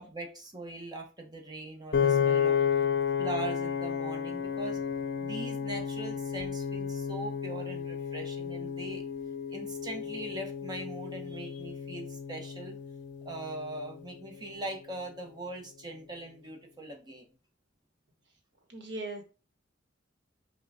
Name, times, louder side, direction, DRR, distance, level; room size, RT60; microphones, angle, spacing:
voice 1, 0.0-2.6 3.2-9.1 9.5-12.8 13.2-17.3, right 2 dB, 20° right, 1 dB, 1.0 m, -41 dB
Piano, 1.9-14.2, left 7 dB, 65° left, 0.6 m, -32 dB
voice 2, 18.7-19.2, right 2 dB, 65° right, 3 dB, 1.2 m, -38 dB
5.6 x 2.3 x 3.5 m, 0.34 s
head